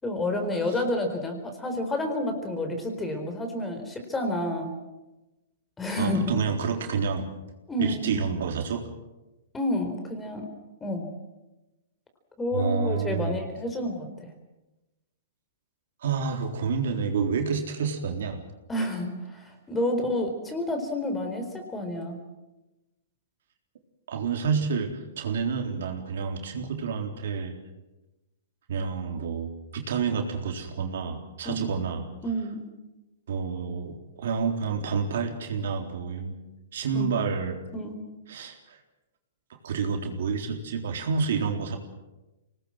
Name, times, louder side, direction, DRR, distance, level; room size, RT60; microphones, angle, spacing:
voice 1, 0.0-4.7 5.8-6.3 7.7-8.1 9.5-10.5 10.8-11.1 12.4-14.3 18.7-22.2 31.4-31.6 32.2-32.7 36.9-37.1 37.7-38.0, left 1 dB, 10° left, 6 dB, 4.2 m, -29 dB
voice 2, 6.0-7.3 7.8-8.9 12.5-13.4 16.0-18.4 24.1-27.5 28.7-32.1 33.3-36.4 36.7-37.6 38.3-38.8 39.6-41.8, right 5 dB, 70° right, 3 dB, 3.9 m, -29 dB
24.0 x 19.5 x 7.7 m, 1.0 s
hypercardioid pair, 125°, 0 cm